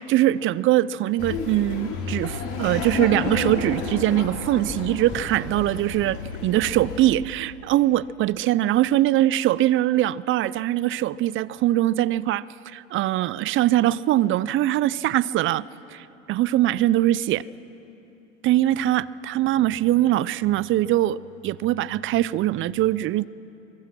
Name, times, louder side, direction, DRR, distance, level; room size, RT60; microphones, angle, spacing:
voice 1, 0.0-12.4 12.7-15.6 15.9-17.4 18.4-21.2 21.4-23.3, right 14 dB, 35° right, 20 dB, 0.5 m, -22 dB
Laughter, 1.2-7.0, left 4 dB, 50° left, 6.1 m, -31 dB
25.0 x 22.5 x 6.1 m, 3.0 s
hypercardioid pair, 95°, 37 cm